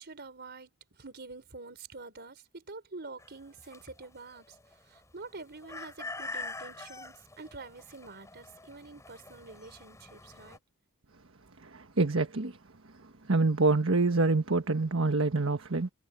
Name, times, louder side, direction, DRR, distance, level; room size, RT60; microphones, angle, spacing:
voice 1, 0.0-10.6, right 3 dB, 50° right, 4.5 m, -47 dB
sound 1, 3.2-10.6, left 3 dB, 15° left, 4.0 m, -45 dB
voice 2, 11.6-12.6 13.3-15.9, right 3 dB, 65° right, 1.4 m, -26 dB
head